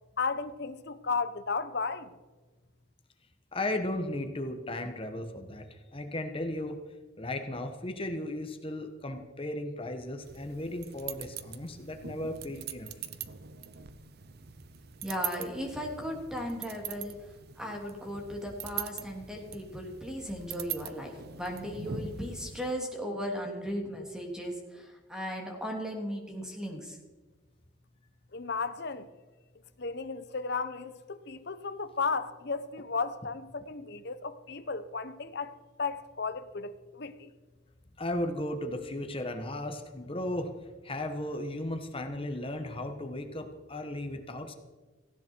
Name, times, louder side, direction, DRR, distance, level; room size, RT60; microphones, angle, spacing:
voice 1, 0.2-2.1 28.3-29.1 29.8-37.3, left 4 dB, 55° left, 1.0 m, -34 dB
voice 2, 3.5-6.8 7.2-12.9 38.0-40.6 40.8-44.5, left 1 dB, 25° left, 1.3 m, -35 dB
sound 1, 10.2-22.7, right 8 dB, 50° right, 0.8 m, -42 dB
voice 3, 15.0-17.1 17.6-27.0, equal, 5° right, 3.0 m, -37 dB
17.5 x 16.0 x 4.7 m
head